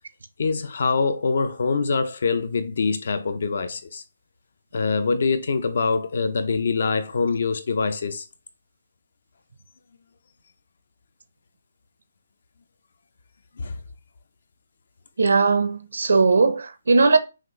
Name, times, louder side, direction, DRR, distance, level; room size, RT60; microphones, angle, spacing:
voice 1, 0.4-4.0 4.7-8.2 13.6-13.8, left 4 dB, 60° left, 0.7 m, -24 dB
voice 2, 15.2-17.2, right 4 dB, 85° right, 0.8 m, -19 dB
5.9 x 2.6 x 3.2 m
hypercardioid pair, 170°, 0 cm